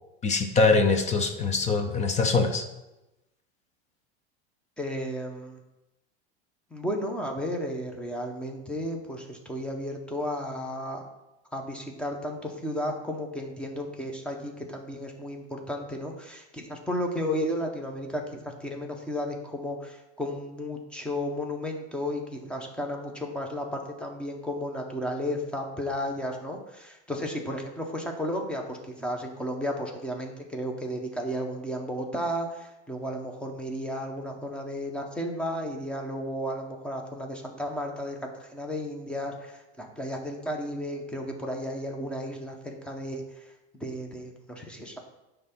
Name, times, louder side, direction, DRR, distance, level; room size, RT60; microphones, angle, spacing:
voice 1, 0.2-2.6, left 3 dB, 20° left, 6 dB, 0.6 m, -23 dB
voice 2, 4.8-5.6 6.7-11.0 11.5-43.2 43.8-45.0, equal, 5° left, 2 dB, 1.0 m, -33 dB
9.3 x 3.4 x 6.0 m, 0.98 s
supercardioid pair, 140°, 33 cm